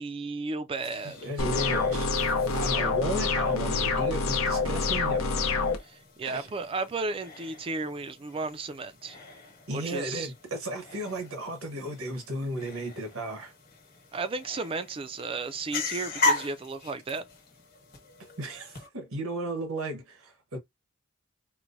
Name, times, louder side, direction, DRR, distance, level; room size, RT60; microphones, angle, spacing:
voice 1, 0.0-1.3 5.8-9.2 9.7-10.3 14.1-17.3, right 3 dB, 25° right, 0.3 m, -34 dB
sound 1, 0.7-18.9, left 2 dB, 45° left, 1.1 m, -38 dB
voice 2, 1.0-2.1 2.5-5.2 6.2-6.5 9.7-13.5 18.4-20.6, right 1 dB, 85° right, 1.1 m, -34 dB
sound 2, 1.4-5.8, left 4 dB, 80° left, 0.6 m, -26 dB
4.5 x 2.1 x 2.6 m
head